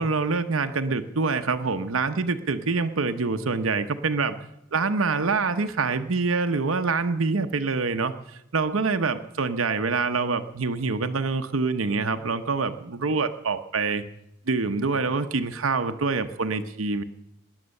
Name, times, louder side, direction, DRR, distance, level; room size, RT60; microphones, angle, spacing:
voice 1, 0.0-4.4 4.7-8.1 8.5-14.0 14.5-17.0, right 4 dB, 80° right, 8 dB, 0.8 m, -25 dB
18.0 x 10.5 x 6.5 m, 0.85 s
head